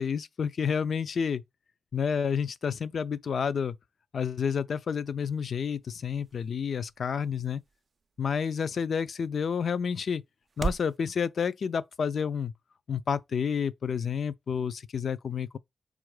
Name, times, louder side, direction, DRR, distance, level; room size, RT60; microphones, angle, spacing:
voice 1, 0.0-1.4 1.9-3.8 4.1-7.6 8.2-10.2 10.6-12.5 12.9-15.6, left 6 dB, 65° left, 0.3 m, -30 dB
sound 1, 4.7-11.0, right 5 dB, 45° right, 0.3 m, -42 dB
4.4 x 2.4 x 4.7 m
wide cardioid pair, 105°, 0 cm